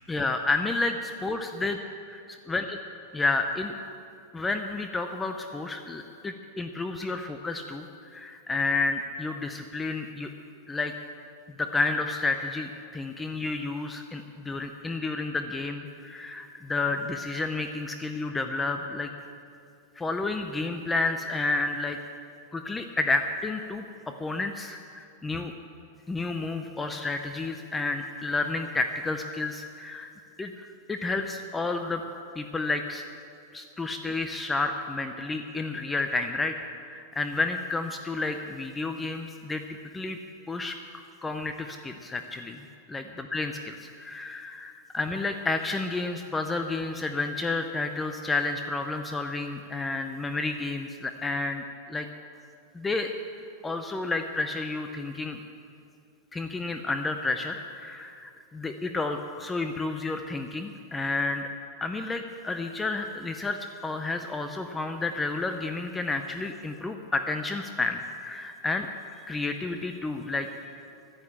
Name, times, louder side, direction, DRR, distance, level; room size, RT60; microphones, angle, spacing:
voice 1, 0.0-1.8 2.5-2.6 3.1-3.7 4.3-7.9 8.1-10.3 10.7-10.9 11.6-19.1 20.0-22.0 22.5-25.5 26.1-30.1 30.4-32.0 32.4-33.0 33.5-36.6 36.8-39.6 39.9-40.2 40.5-40.8 41.2-42.6 42.9-51.6 51.9-52.1 52.7-53.1 53.6-55.4 56.3-61.5 61.8-68.9 69.3-70.5, left 3 dB, 10° left, 6 dB, 0.5 m, -30 dB
12.5 x 9.2 x 8.6 m, 2.4 s
supercardioid pair, 160°, 0 cm